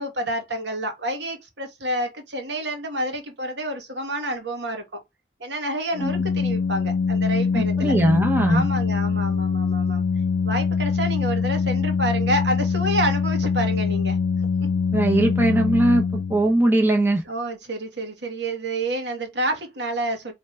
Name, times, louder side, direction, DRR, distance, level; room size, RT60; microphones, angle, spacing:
voice 1, 0.0-5.0 5.4-7.9 8.5-10.0 10.4-14.2 14.6-14.7 17.3-20.3, right 1 dB, 70° right, 1.5 m, -28 dB
Organ, 5.9-16.7, left 5 dB, 80° left, 0.4 m, -23 dB
voice 2, 7.5-8.6 14.9-16.0 16.3-17.2, right 1 dB, 10° right, 0.8 m, -20 dB
4.8 x 3.2 x 3.3 m
head